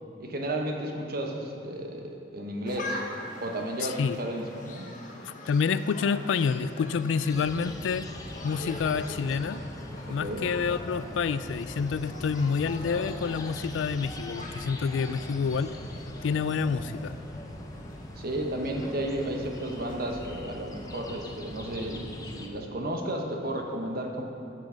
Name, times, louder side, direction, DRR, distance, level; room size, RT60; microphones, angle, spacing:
voice 1, 0.2-3.0 3.4-4.9 10.1-10.5 18.2-24.2, right 1 dB, 55° right, 2 dB, 1.2 m, -33 dB
sound 1, 2.6-22.6, left 1 dB, 45° left, 1.2 m, -44 dB
voice 2, 3.8-4.2 5.3-8.1 8.4-9.6 10.1-15.7 16.2-17.1, left 5 dB, 80° left, 14 dB, 0.3 m, -28 dB
sound 2, 7.3-22.5, left 1 dB, 20° left, 0.7 m, -42 dB
Mechanical fan, 7.8-18.0, equal, ahead, 2.2 m, -49 dB
13.0 x 6.2 x 5.2 m, 2.6 s
head